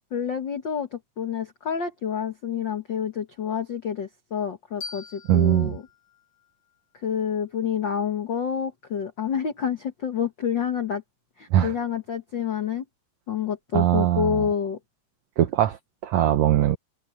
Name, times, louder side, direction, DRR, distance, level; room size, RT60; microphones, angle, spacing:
voice 1, 0.1-5.8 7.0-11.0 11.4-12.8 13.3-14.8, left 8 dB, 75° left, 1.0 m, -28 dB
sound 1, 4.8-7.6, left 4 dB, 50° left, 4.8 m, -44 dB
voice 2, 5.3-5.7 11.5-11.7 13.7-14.5 15.4-16.8, right 12 dB, 90° right, 1.5 m, -21 dB
omnidirectional pair, 4.3 m